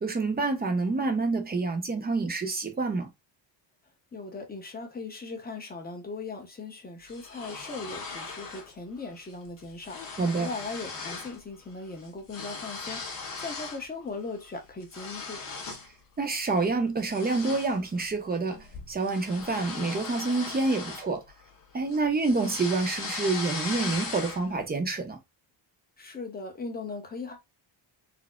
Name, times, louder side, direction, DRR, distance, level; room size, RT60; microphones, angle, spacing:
voice 1, 0.0-3.1 10.2-10.5 16.2-18.6 18.9-21.2 21.7-25.2, right 3 dB, 20° right, 0.6 m, -27 dB
voice 2, 4.1-15.4 26.0-27.4, left 3 dB, 20° left, 0.7 m, -39 dB
sound 1, 7.1-8.7 9.1-9.3 9.6-11.4 11.7-13.8 14.3-15.9 16.4-16.6 17.0-21.6 21.9-24.6, left 4 dB, 45° left, 1.2 m, -38 dB
4.1 x 2.0 x 2.3 m
cardioid pair, 160°, 46 cm